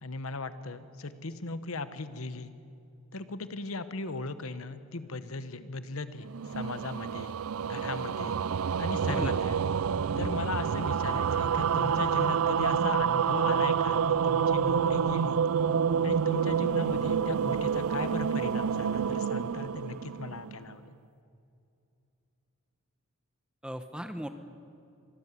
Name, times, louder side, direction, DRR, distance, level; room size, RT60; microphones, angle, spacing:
voice 1, 0.0-2.5 3.1-7.3 7.7-8.4 8.8-9.6 10.2-15.4 16.0-20.9, left 3 dB, 75° left, 12 dB, 1.1 m, -37 dB
sound 1, 6.3-20.7, right 7 dB, 80° right, 0.5 m, -28 dB
voice 2, 9.1-9.4 10.1-10.4 23.6-24.3, equal, 5° right, 9 dB, 1.0 m, -37 dB
24.5 x 13.5 x 9.6 m, 2.6 s
head